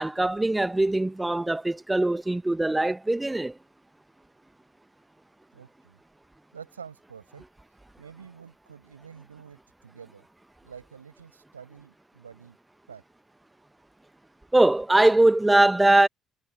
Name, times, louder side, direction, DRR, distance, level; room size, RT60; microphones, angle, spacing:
voice 1, 0.0-3.6 14.5-16.1, right 2 dB, 10° right, 1.2 m, -21 dB
voice 2, 5.5-6.0 6.5-7.5 8.0-10.3 10.6-12.6 12.9-13.0, right 7 dB, 85° right, 6.7 m, -47 dB
figure-of-eight pair, 50°, 0 cm